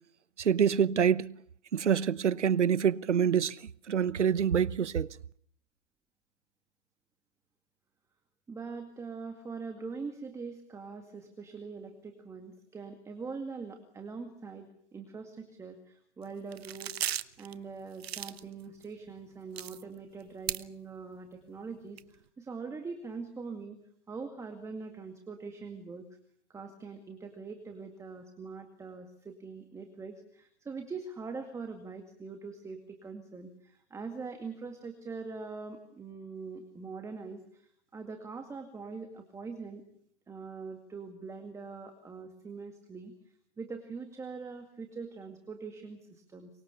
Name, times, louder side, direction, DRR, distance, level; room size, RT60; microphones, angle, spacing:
voice 1, 0.4-1.4 1.7-5.1, right 8 dB, 90° right, 1.0 m, -26 dB
voice 2, 8.5-17.0 17.4-23.8 24.1-26.1 26.5-39.8 40.3-43.1 43.6-46.5, right 4 dB, 10° right, 2.1 m, -43 dB
sound 1, 16.2-16.3 16.5-17.5 17.9-18.8 19.1-19.2 19.6-20.6 21.0-21.1 21.6-22.0, right 11 dB, 60° right, 1.2 m, -36 dB
24.0 x 23.5 x 6.9 m
hypercardioid pair, 140°, 34 cm